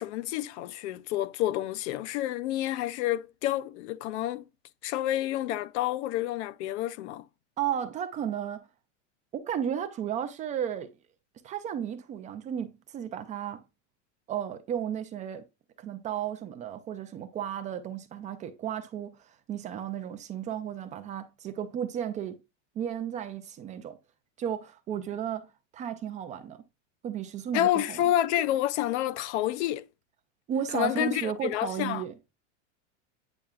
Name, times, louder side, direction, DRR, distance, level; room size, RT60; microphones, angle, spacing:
voice 1, 0.0-4.4 4.8-7.2 27.5-29.8 30.7-32.0, left 13 dB, 65° left, 0.5 m, -29 dB
voice 2, 7.6-8.7 9.3-10.9 11.4-13.6 14.3-15.4 15.8-22.4 22.8-24.0 24.4-26.6 27.0-28.0 30.5-32.1, right 9 dB, 20° right, 0.3 m, -34 dB
8.8 x 4.6 x 2.3 m
supercardioid pair, 130°, 37 cm